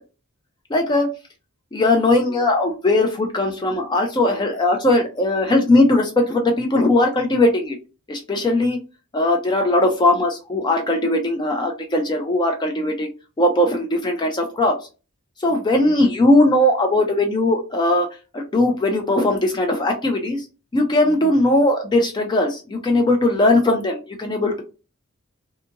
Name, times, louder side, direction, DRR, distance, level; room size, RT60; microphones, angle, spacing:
voice 1, 0.7-1.1 1.7-7.8 8.1-8.8 9.1-13.1 13.4-14.7 15.4-18.1 18.3-20.4 20.7-24.6, left 2 dB, 20° left, 3 dB, 0.4 m, -19 dB
2.7 x 2.6 x 2.5 m, 0.33 s
head